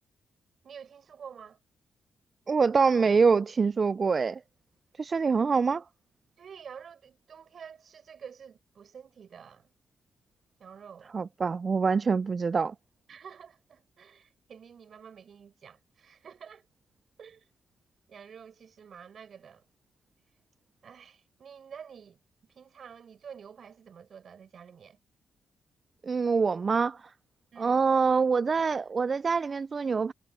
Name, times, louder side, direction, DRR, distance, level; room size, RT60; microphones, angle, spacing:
voice 1, 0.6-1.6 6.4-9.7 10.6-11.1 13.1-16.7 17.2-17.5 18.1-19.6 20.8-22.2 22.5-25.0 27.5-27.8, right 7 dB, 55° right, 7.8 m, -49 dB
voice 2, 2.5-4.4 5.0-5.8 11.1-12.7 26.0-27.1 27.6-30.1, right 5 dB, 40° right, 0.3 m, -25 dB
cardioid pair, 105°, 0 cm